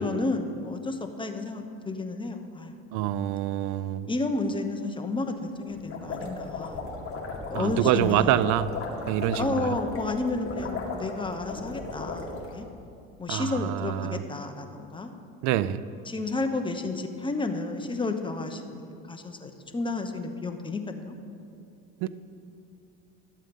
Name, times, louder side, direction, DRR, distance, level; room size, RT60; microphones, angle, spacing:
voice 1, 0.0-2.7 4.1-6.8 7.5-8.4 9.4-12.7 13.2-15.1 16.1-18.8 19.1-21.2, left 3 dB, 15° left, 6 dB, 1.0 m, -31 dB
voice 2, 2.9-4.1 7.5-8.7 9.1-9.8 13.3-14.2 15.4-15.8 22.0-22.1, right 12 dB, 60° right, 15 dB, 0.5 m, -26 dB
sound 1, 5.7-12.5, left 3 dB, 40° left, 2.1 m, -36 dB
13.5 x 7.5 x 5.3 m, 2.5 s
supercardioid pair, 95°, 34 cm